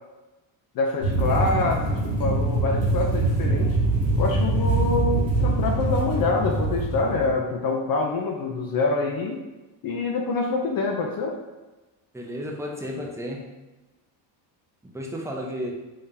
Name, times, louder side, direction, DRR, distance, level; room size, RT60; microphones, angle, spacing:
voice 1, 0.7-3.8 4.2-9.4 9.8-11.4, left 3 dB, 45° left, 1 dB, 0.6 m, -26 dB
sound 1, 1.0-7.3, right 2 dB, 30° right, 1.4 m, -23 dB
voice 2, 12.1-13.5 14.9-15.7, equal, 5° right, -1 dB, 0.5 m, -32 dB
3.7 x 3.5 x 2.7 m, 1.1 s
cardioid pair, 120°, 50 cm